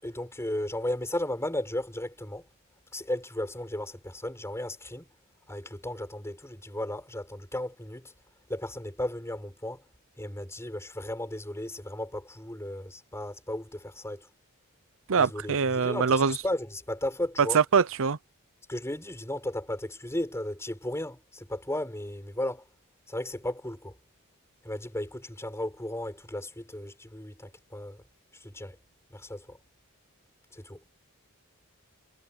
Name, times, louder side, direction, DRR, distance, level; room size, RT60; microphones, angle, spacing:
voice 1, 0.0-2.4 2.9-5.1 5.5-8.1 8.5-9.8 10.2-14.3 15.2-17.6 18.7-22.6 23.1-23.9 24.6-28.0 28.4-28.8 29.1-29.6 30.5-30.8, left 1 dB, 10° left, 6.6 m, -35 dB
voice 2, 15.1-16.4 17.4-18.2, right 5 dB, 65° right, 0.6 m, -23 dB
head